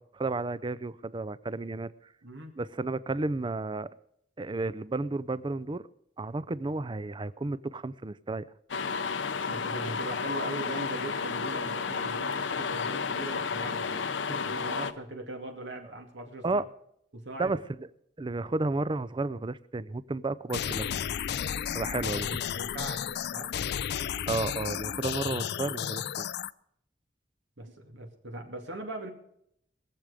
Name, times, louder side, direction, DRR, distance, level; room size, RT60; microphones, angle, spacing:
voice 1, 0.0-1.9 2.6-3.9 4.4-5.8 6.2-8.4 16.4-16.7 17.4-17.9 18.2-20.9 21.7-22.3 24.3-26.3, right 3 dB, 25° right, 16 dB, 0.5 m, -32 dB
voice 2, 2.2-2.5 9.5-16.6 17.1-17.6 22.0-23.5 27.6-29.1, right 2 dB, 85° right, 2 dB, 2.4 m, -40 dB
sound 1, 8.7-14.9, left 5 dB, 90° left, 0.8 m, -32 dB
sound 2, 20.5-26.5, left 9 dB, 60° left, 0.4 m, -33 dB
21.0 x 7.6 x 5.1 m, 0.72 s
head